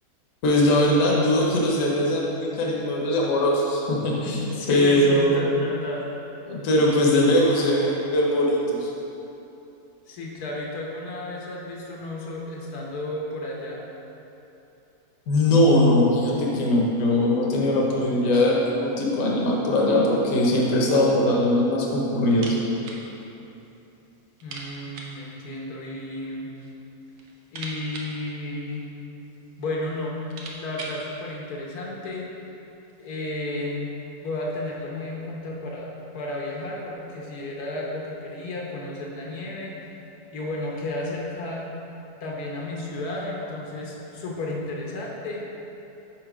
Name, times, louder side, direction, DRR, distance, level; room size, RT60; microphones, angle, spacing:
voice 1, 0.4-5.4 6.5-8.9 15.3-22.6, left 1 dB, 60° left, -3 dB, 1.2 m, -21 dB
voice 2, 4.5-6.0 10.1-13.8 24.4-26.5 27.5-28.9 29.6-30.2 30.5-32.3 33.0-33.9 34.2-39.7 40.3-41.7 42.2-45.4, left 2 dB, 80° left, -3 dB, 1.4 m, -32 dB
sound 1, 22.3-23.1 23.3-23.4 23.8-23.9 24.4-25.2 26.2-26.8 27.1-29.1 29.8-29.9 30.1-31.1, right 2 dB, 85° right, 1.3 m, -40 dB
5.4 x 4.5 x 4.9 m, 2.9 s
omnidirectional pair, 1.6 m